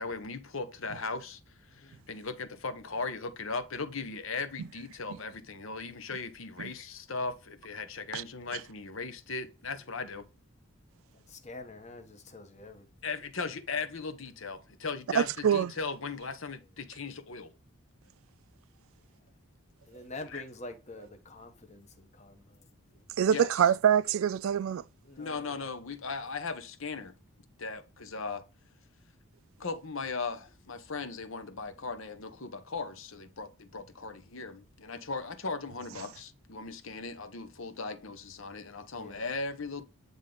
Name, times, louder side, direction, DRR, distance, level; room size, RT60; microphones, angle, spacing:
voice 1, 0.0-1.4 1.7-10.3 13.0-17.5 20.3-20.4 23.3-23.7 25.2-27.1 27.6-28.5 29.6-39.8, left 4 dB, 60° left, 1.0 m, -38 dB
voice 2, 1.7-2.0 11.1-12.9 19.8-23.1 25.0-25.7 38.9-39.3, left 2 dB, 30° left, 1.1 m, -47 dB
voice 3, 15.1-15.7 23.2-24.8, right 8 dB, 65° right, 0.3 m, -25 dB
9.6 x 3.6 x 3.9 m
head